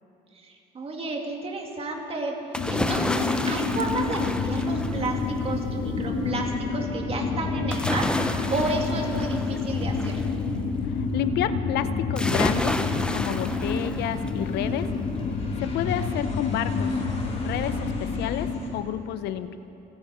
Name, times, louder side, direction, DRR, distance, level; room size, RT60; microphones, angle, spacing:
voice 1, 0.3-2.4 2.7-10.2, right 3 dB, 35° right, 1 dB, 2.4 m, -32 dB
sound 1, 2.5-18.6, left 4 dB, 60° left, 2.0 m, -28 dB
sound 2, 2.5-5.4 7.7-10.3 12.2-14.4 14.9-15.0, left 1 dB, 5° left, 0.7 m, -30 dB
Aircraft, 8.8-18.7, left 2 dB, 40° left, 4.3 m, -46 dB
voice 2, 10.9-12.8 13.1-14.9 15.6-17.0 17.4-19.6, left 11 dB, 80° left, 12 dB, 0.6 m, -30 dB
29.0 x 10.5 x 4.3 m, 2.9 s
cardioid pair, 110°, 17 cm